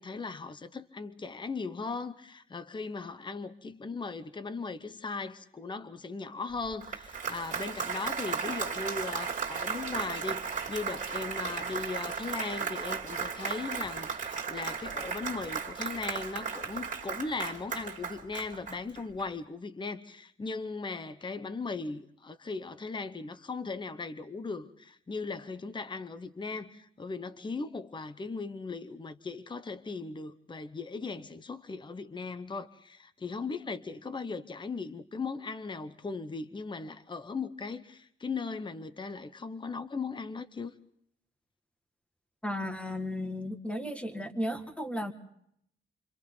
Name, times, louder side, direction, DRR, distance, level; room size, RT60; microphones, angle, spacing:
voice 1, 0.0-40.7, left 4 dB, 20° left, 0.9 m, -38 dB
Applause, 6.6-19.2, right 6 dB, 40° right, 3.0 m, -35 dB
voice 2, 42.4-45.1, left 1 dB, 5° left, 1.8 m, -34 dB
28.5 x 26.0 x 3.9 m
wide cardioid pair, 140°, 21 cm